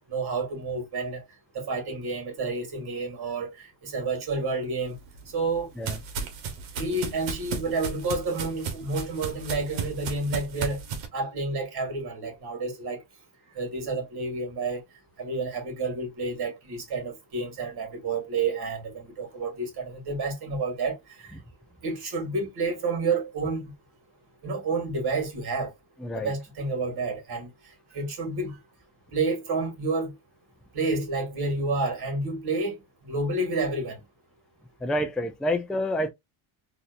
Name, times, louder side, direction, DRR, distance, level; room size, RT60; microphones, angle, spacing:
voice 1, 0.1-1.2 1.5-5.0 5.3-5.7 6.7-10.8 11.1-13.0 13.5-14.8 15.2-21.4 21.8-23.7 24.4-25.7 26.1-27.5 27.9-28.6 29.1-30.2 30.7-34.0, right 3 dB, 50° right, 2.1 m, -30 dB
sound 1, 4.9-11.1, right 5 dB, 75° right, 1.2 m, -35 dB
voice 2, 26.0-26.3 34.8-36.1, left 1 dB, ahead, 0.4 m, -28 dB
4.1 x 2.7 x 2.5 m
cardioid pair, 130°, 47 cm